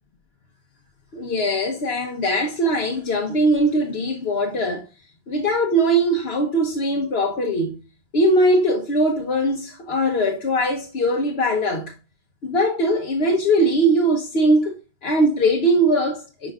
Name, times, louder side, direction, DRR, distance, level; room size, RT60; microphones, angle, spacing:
voice 1, 1.1-4.8 5.3-7.8 8.1-11.9 12.4-16.5, right 1 dB, 80° left, 1.2 m, -21 dB
10.0 x 5.2 x 2.3 m
omnidirectional pair, 1.0 m